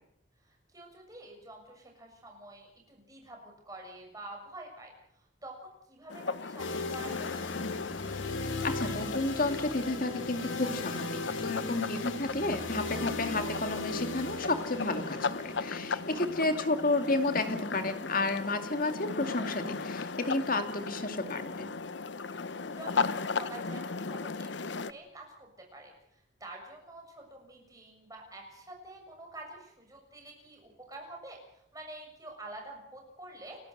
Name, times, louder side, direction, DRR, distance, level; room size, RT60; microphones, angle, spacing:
voice 1, 0.4-7.3 16.1-16.6 22.2-33.6, right 2 dB, 20° right, 1 dB, 7.0 m, -48 dB
sound 1, 6.1-24.9, left 4 dB, 65° left, 0.8 m, -37 dB
sound 2, 6.6-20.4, left 3 dB, 85° left, 2.6 m, -38 dB
voice 2, 8.2-21.7, left 2 dB, 45° left, 7 dB, 2.3 m, -32 dB
29.5 x 12.5 x 7.9 m, 0.78 s
head